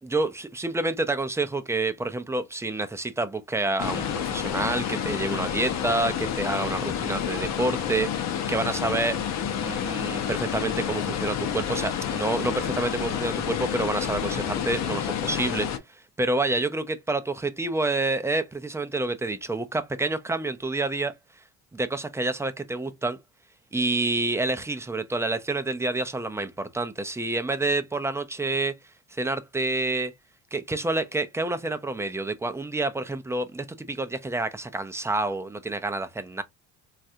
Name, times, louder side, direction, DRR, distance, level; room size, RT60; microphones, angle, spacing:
voice 1, 0.0-9.2 9.6-15.7 16.2-21.1 21.7-23.2 23.7-28.7 29.1-30.1 30.5-36.4, right 2 dB, 10° right, 0.4 m, -28 dB
sound 1, 3.8-15.8, left 8 dB, 55° left, 0.7 m, -29 dB
3.1 x 2.4 x 2.7 m
supercardioid pair, 85°, 32 cm